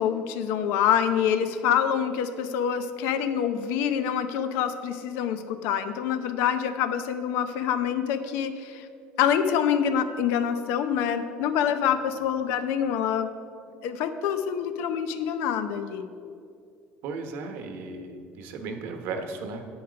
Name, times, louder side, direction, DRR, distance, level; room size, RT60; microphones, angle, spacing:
voice 1, 0.0-8.9 9.2-13.3 13.8-16.1, left 8 dB, 75° left, 10 dB, 0.7 m, -26 dB
voice 2, 17.0-19.7, right 4 dB, 65° right, 6 dB, 1.1 m, -35 dB
9.2 x 8.8 x 5.1 m, 2.5 s
cardioid pair, 145°, 4 cm